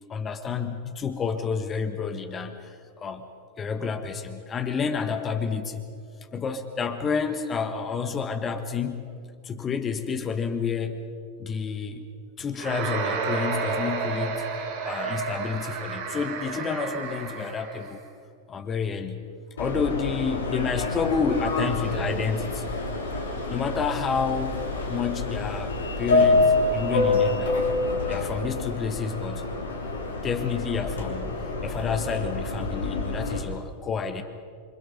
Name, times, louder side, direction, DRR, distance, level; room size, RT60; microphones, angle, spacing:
voice 1, 0.1-3.3 3.6-5.8 6.2-9.1 9.4-11.1 11.4-12.0 12.4-14.5 14.8-18.0 18.5-19.3 19.6-22.7 23.5-24.6 24.9-27.7 28.1-29.5 30.2-34.2, left 6 dB, 25° left, 7 dB, 1.6 m, -29 dB
sound 1, 12.6-18.0, right 5 dB, 45° right, 2.6 m, -31 dB
Subway metro underground, 19.6-33.4, left 2 dB, 65° left, 3.5 m, -27 dB
27.5 x 25.0 x 5.4 m, 2.2 s
figure-of-eight pair, 90°, 0 cm